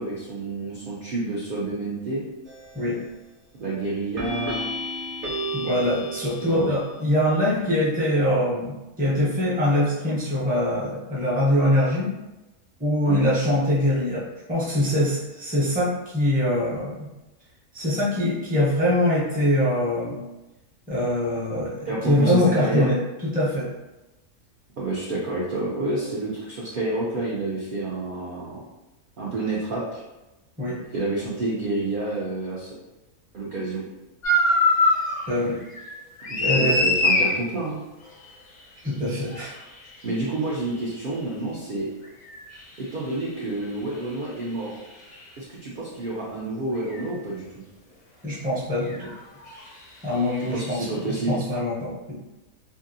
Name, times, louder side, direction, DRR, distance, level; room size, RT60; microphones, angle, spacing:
voice 1, 0.0-2.2 3.6-4.7 6.4-6.7 13.0-13.3 21.9-22.9 24.8-28.6 29.2-30.0 30.9-32.7 33.3-33.8 36.3-37.8 40.0-41.9 42.8-44.8 45.4-47.5 50.4-51.4, right 2 dB, 80° right, -6 dB, 0.4 m, -29 dB
sound 1, 2.5-2.9 4.2-6.9, equal, 45° right, 0.9 m, -32 dB
voice 2, 5.5-12.1 12.8-14.2 14.5-17.1 17.7-20.2 20.9-23.7 30.6-30.8 35.3-35.6 36.4-36.9 38.8-39.6 48.2-49.1 50.0-52.2, left 1 dB, 10° right, -7 dB, 0.4 m, -23 dB
sound 2, 34.2-35.2 35.6-37.3 39.3-39.4 42.3-42.4 45.1-45.2 46.9-47.1 48.9-49.1 49.4-49.6, left 2 dB, 55° left, 0.5 m, -22 dB
2.7 x 2.6 x 2.6 m, 1.0 s
omnidirectional pair, 1.6 m